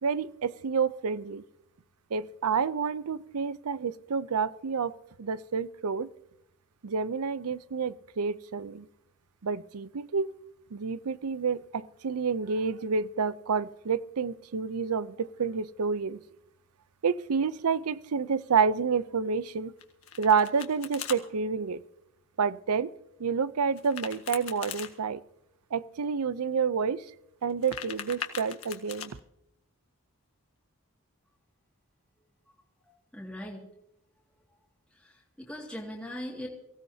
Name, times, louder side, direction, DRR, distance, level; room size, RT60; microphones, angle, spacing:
voice 1, 0.0-1.4 2.1-6.1 6.8-8.9 9.4-10.3 10.7-16.2 17.0-19.7 20.2-21.8 22.4-22.9 23.2-25.2 25.7-27.1 27.4-29.2, right 5 dB, 85° right, 17 dB, 0.6 m, -29 dB
Domestic sounds home sounds, 19.8-21.2 23.7-24.9 27.4-29.1, left 8 dB, 70° left, 1.7 m, -40 dB
voice 2, 32.8-33.6 34.9-36.5, equal, 5° left, -4 dB, 2.1 m, -40 dB
23.5 x 16.5 x 2.8 m, 0.83 s
head